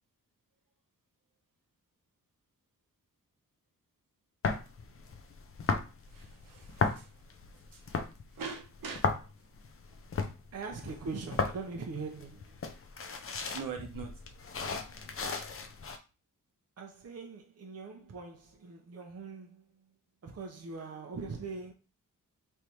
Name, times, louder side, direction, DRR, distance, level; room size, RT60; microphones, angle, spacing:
sound 1, 4.4-16.0, left 4 dB, 40° left, 0.5 m, -36 dB
voice 1, 6.0-7.2 7.5-9.1 9.9-10.0 13.5-14.1, right 6 dB, 75° right, 1.0 m, -43 dB
voice 2, 10.5-12.6 16.8-19.6 20.2-21.7, right 4 dB, 45° right, 0.8 m, -41 dB
3.4 x 2.7 x 4.5 m
wide cardioid pair, 110°, 34 cm